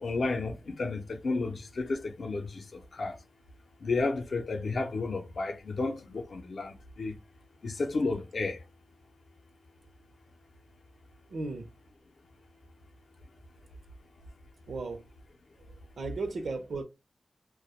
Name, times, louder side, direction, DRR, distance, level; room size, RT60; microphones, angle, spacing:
voice 1, 0.0-3.2 3.8-7.2 7.6-8.6, left 3 dB, 65° left, 0.5 m, -32 dB
voice 2, 11.3-11.7 14.7-15.0 16.0-16.8, right 3 dB, 85° right, 0.6 m, -35 dB
2.2 x 2.0 x 2.9 m
wide cardioid pair, 135°, 0 cm